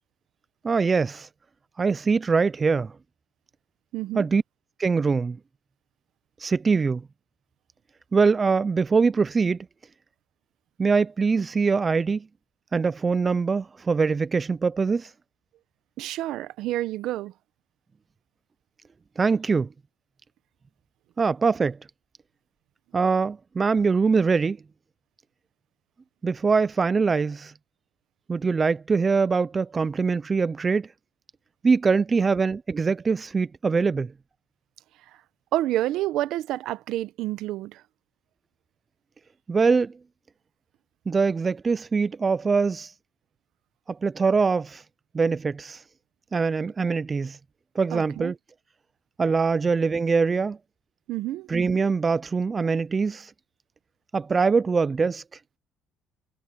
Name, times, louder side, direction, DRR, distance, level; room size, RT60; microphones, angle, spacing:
voice 1, 0.6-1.3 1.8-2.9 4.2-4.4 4.8-5.4 6.4-7.0 8.1-9.6 10.8-12.2 12.7-15.1 19.2-19.7 21.2-21.8 22.9-24.6 26.2-27.5 28.3-30.9 31.6-34.1 39.5-39.9 41.1-42.9 43.9-44.8 45.1-45.8 46.3-47.4 47.8-48.3 49.2-50.6 51.5-53.3 54.1-55.2, right 4 dB, 25° right, 0.3 m, -23 dB
voice 2, 3.9-4.3 16.0-17.3 35.1-35.2 35.5-37.8 47.9-48.3 51.1-51.5, right 15 dB, 70° right, 0.9 m, -29 dB
cardioid pair, 140°, 0 cm